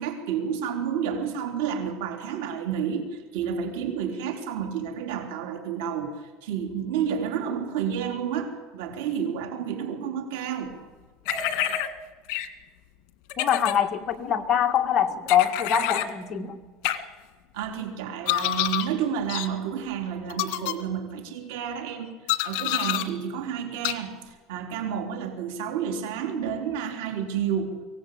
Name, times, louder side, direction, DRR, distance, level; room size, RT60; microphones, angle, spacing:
voice 1, 0.0-10.8 17.5-22.2 22.4-27.8, right 8 dB, 85° right, 4 dB, 3.9 m, -30 dB
sound 1, 11.3-11.9 12.3-12.5 13.3-13.8 15.3-16.1 16.8-17.0 18.3-18.9 19.3-19.5 20.3-20.7 22.3-23.1 23.8-24.0, left 13 dB, 65° left, 1.9 m, -27 dB
voice 2, 13.4-16.6, left 8 dB, 30° left, 4 dB, 1.9 m, -24 dB
24.0 x 18.0 x 8.7 m, 1.3 s
cardioid pair, 155°, 0 cm